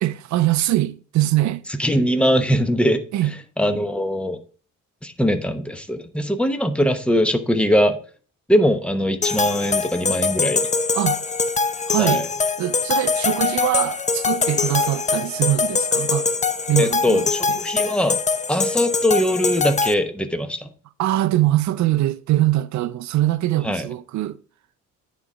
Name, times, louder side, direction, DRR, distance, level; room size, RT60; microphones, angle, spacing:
voice 1, 0.0-1.6 3.1-3.3 10.9-11.2 11.9-12.3 12.6-16.3 16.7-17.6 21.0-24.4, right 14 dB, 70° right, 0.5 m, -22 dB
voice 2, 1.8-3.0 3.6-4.4 5.0-8.0 8.5-10.7 12.0-12.3 16.8-18.2 18.5-20.7 23.6-23.9, equal, 5° left, 0.9 m, -21 dB
sound 1, 9.2-19.9, left 4 dB, 25° left, 0.6 m, -23 dB
9.6 x 4.1 x 4.9 m
cardioid pair, 90°, 30 cm